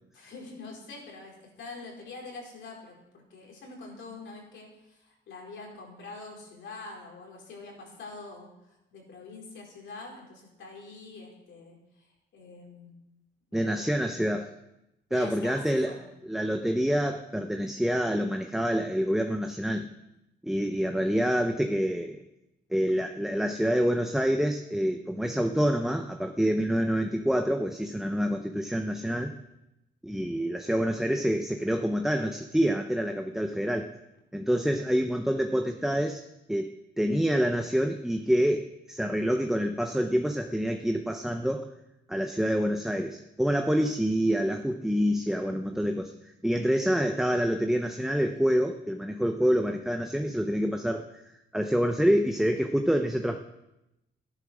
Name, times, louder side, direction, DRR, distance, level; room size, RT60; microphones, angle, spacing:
voice 1, 0.1-12.1 12.3-12.9 13.5-14.2 15.1-16.0, left 3 dB, 70° left, 0 dB, 4.6 m, -45 dB
voice 2, 13.5-14.5 15.1-15.9 16.2-19.9 20.4-22.2 22.7-29.3 30.0-33.9 34.3-36.2 36.5-41.7 42.1-46.1 46.4-51.1 51.5-53.4, equal, ahead, 5 dB, 0.8 m, -27 dB
14.0 x 10.5 x 6.3 m, 0.91 s
cardioid pair, 120°, 20 cm